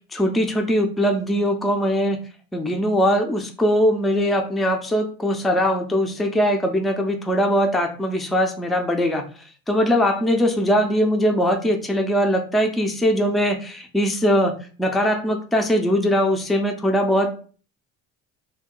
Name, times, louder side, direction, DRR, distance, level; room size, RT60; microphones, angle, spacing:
voice 1, 0.1-2.2 2.5-9.2 9.7-17.3, equal, ahead, 4 dB, 0.3 m, -21 dB
2.7 x 2.6 x 3.7 m, 0.39 s
cardioid pair, 120°, 30 cm